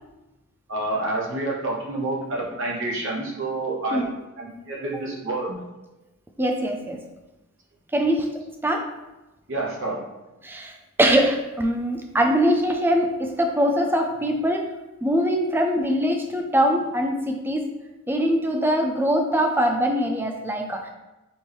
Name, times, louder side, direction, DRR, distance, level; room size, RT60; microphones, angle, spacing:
voice 1, 0.7-4.0 4.4-5.6 9.5-10.0, right 2 dB, 55° right, -3 dB, 1.0 m, -28 dB
voice 2, 6.4-7.0 7.9-8.3 8.6-8.8 10.4-10.7 11.0-14.7 15.0-17.7 18.1-20.9, equal, 10° right, 3 dB, 0.3 m, -22 dB
4.3 x 3.0 x 3.4 m, 1.0 s
head